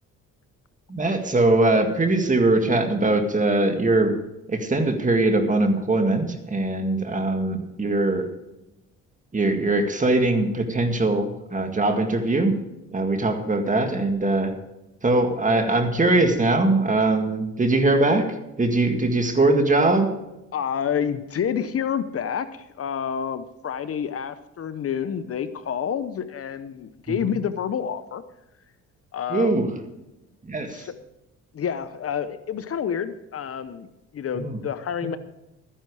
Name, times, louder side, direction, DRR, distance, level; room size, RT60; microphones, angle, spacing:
voice 1, 0.9-4.1 4.5-8.3 9.3-12.5 12.9-14.5 15.0-18.3 18.6-20.1 29.3-29.7 30.4-30.9 34.3-34.6, right 2 dB, 25° right, 6 dB, 1.9 m, -21 dB
voice 2, 20.5-28.2 29.1-29.6 30.7-30.9 31.5-35.2, left 8 dB, 50° left, 12 dB, 0.8 m, -28 dB
13.0 x 10.0 x 4.8 m, 0.95 s
cardioid pair, 90°, 30 cm